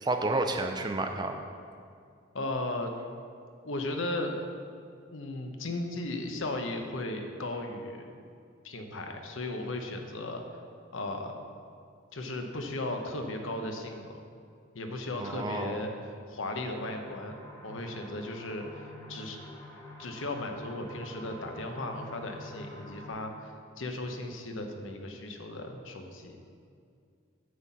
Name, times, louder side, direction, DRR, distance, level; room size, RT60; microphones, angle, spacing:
voice 1, 0.0-1.4 15.2-15.8, right 2 dB, 20° right, 5 dB, 0.5 m, -30 dB
voice 2, 2.3-2.9 3.6-4.4 5.1-8.1 8.6-10.4 10.9-11.3 12.1-14.1 14.7-15.9 16.3-18.8 19.1-19.4 20.0-26.4, left 2 dB, 70° left, 4 dB, 0.9 m, -36 dB
sound 1, 16.6-23.1, left 1 dB, 15° left, 1.1 m, -47 dB
9.4 x 4.2 x 7.4 m, 2.3 s
head